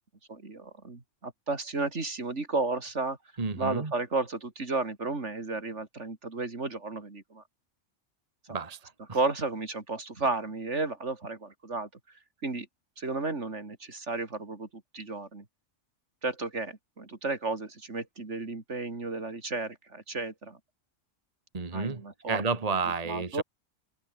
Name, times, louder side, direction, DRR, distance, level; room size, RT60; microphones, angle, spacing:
voice 1, 0.3-3.2 3.5-7.4 8.5-8.6 9.1-11.9 12.4-12.7 13.0-15.4 16.2-20.6 21.7-22.4 23.0-23.4, right 3 dB, 60° right, 3.3 m, -33 dB
voice 2, 3.4-3.9 8.5-8.9 21.5-22.0 22.3-23.4, right 4 dB, 30° right, 1.6 m, -31 dB
open air
omnidirectional pair, 1.4 m